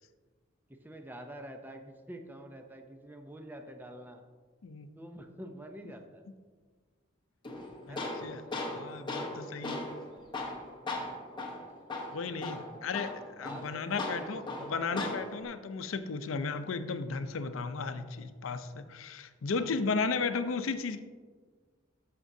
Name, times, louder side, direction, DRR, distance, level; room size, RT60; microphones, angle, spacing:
voice 1, 0.8-4.2 5.0-6.2 7.5-7.6 7.9-8.2 11.5-11.7 12.1-12.6 13.4-15.3 19.5-19.8, right 1 dB, 10° right, 4 dB, 0.6 m, -47 dB
Tools, 7.4-15.4, left 2 dB, 25° left, 1.0 m, -38 dB
voice 2, 7.9-8.4 8.7-9.8 12.1-21.0, left 4 dB, 85° left, 10 dB, 0.5 m, -35 dB
12.5 x 6.0 x 2.7 m, 1.5 s
head